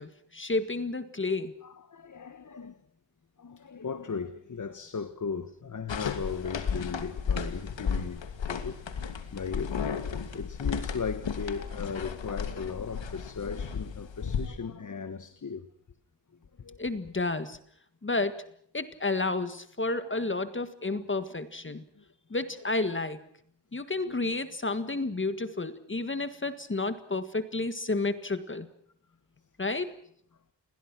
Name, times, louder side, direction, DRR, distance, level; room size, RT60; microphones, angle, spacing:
voice 1, 0.0-1.6 16.8-17.6 18.0-18.4 18.7-21.8 22.3-23.2 23.7-28.7 29.6-29.9, left 3 dB, 25° left, 1.7 m, -31 dB
voice 2, 1.6-2.8 3.4-9.8 10.1-15.7 16.6-16.8 20.1-20.2 20.9-21.0 21.7-22.0 24.0-24.3, left 5 dB, 40° left, 1.5 m, -37 dB
sound 1, 5.9-14.5, left 6 dB, 75° left, 2.8 m, -34 dB
29.0 x 22.0 x 6.1 m
wide cardioid pair, 135°, 45 cm